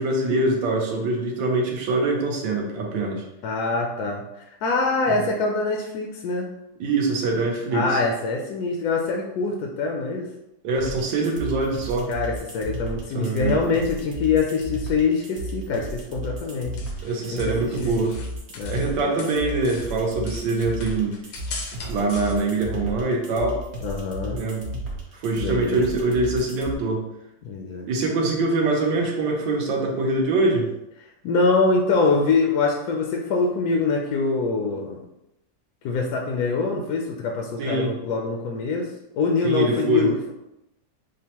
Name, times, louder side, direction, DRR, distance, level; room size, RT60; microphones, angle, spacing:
voice 1, 0.0-3.2 5.1-5.2 6.8-8.0 10.6-12.1 13.1-13.6 17.0-18.1 18.7-21.1 21.9-23.6 24.3-24.6 25.1-27.0 27.8-30.7 37.6-37.9 39.4-40.1, right 2 dB, 75° right, 0 dB, 1.5 m, -24 dB
voice 2, 3.4-6.5 7.7-10.3 12.1-16.8 17.3-18.0 18.5-18.8 23.8-24.4 25.4-25.9 27.4-27.9 31.2-35.0 35.8-38.9 39.1-40.3, left 4 dB, 70° left, 1 dB, 0.9 m, -24 dB
sound 1, 10.7-26.7, right 1 dB, 50° right, 0.9 m, -33 dB
sound 2, 16.4-18.9 19.2-22.3, left 4 dB, 85° left, 1.5 m, -40 dB
6.3 x 2.1 x 2.9 m, 0.88 s
omnidirectional pair, 2.0 m